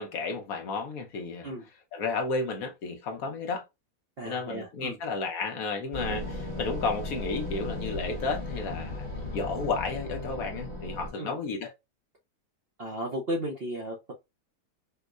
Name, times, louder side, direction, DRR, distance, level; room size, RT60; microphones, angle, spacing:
voice 1, 0.0-1.5 1.9-3.6 4.2-9.1 9.3-11.7, left 4 dB, 65° left, 1.0 m, -32 dB
voice 2, 4.2-5.0 11.2-11.4 12.8-14.1, equal, 55° right, 0.7 m, -34 dB
sound 1, 5.9-11.1, left 2 dB, 30° left, 1.0 m, -36 dB
4.4 x 2.1 x 2.3 m
omnidirectional pair, 1.8 m